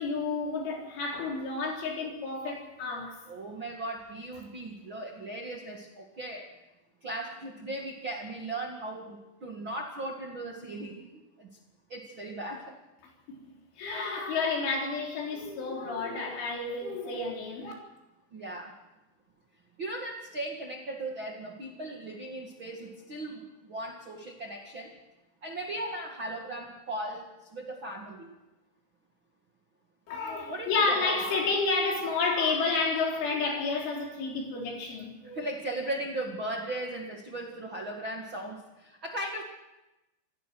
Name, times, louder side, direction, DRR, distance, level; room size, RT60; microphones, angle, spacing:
voice 1, 0.0-3.2 13.3-13.4 13.8-17.7 30.1-35.4, left 4 dB, 90° left, 0 dB, 6.4 m, -30 dB
voice 2, 3.3-6.5 7.0-11.5 11.9-12.7 18.3-18.7 19.8-24.9 25.4-27.3 27.5-28.3 30.5-31.4 35.3-39.4, right 1 dB, 50° right, 0 dB, 1.4 m, -37 dB
27.0 x 17.0 x 6.3 m, 1.0 s
omnidirectional pair, 5.4 m